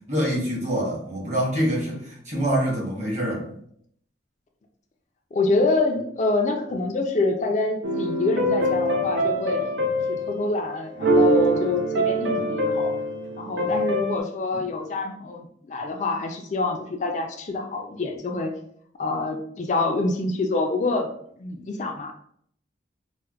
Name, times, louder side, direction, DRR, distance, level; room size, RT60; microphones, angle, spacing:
voice 1, 0.1-3.4, equal, 40° right, -3 dB, 1.1 m, -25 dB
voice 2, 5.3-9.6 10.1-12.9 13.4-18.5 19.0-21.1 21.4-22.1, left 2 dB, 40° left, 3 dB, 0.3 m, -26 dB
sound 1, 7.8-10.5 10.9-14.2, equal, 85° right, 0.5 m, -24 dB
4.4 x 2.1 x 2.3 m, 0.66 s
head